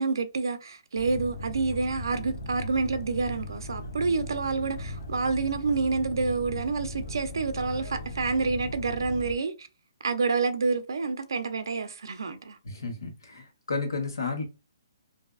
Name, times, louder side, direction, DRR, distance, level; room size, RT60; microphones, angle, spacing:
voice 1, 0.0-9.7 10.0-12.6, right 4 dB, 80° right, 0.4 m, -28 dB
sound 1, 1.0-9.4, left 1 dB, 60° left, 0.7 m, -38 dB
voice 2, 12.6-14.4, left 4 dB, 85° left, 1.1 m, -32 dB
2.6 x 2.3 x 2.4 m
hypercardioid pair, 175°, 2 cm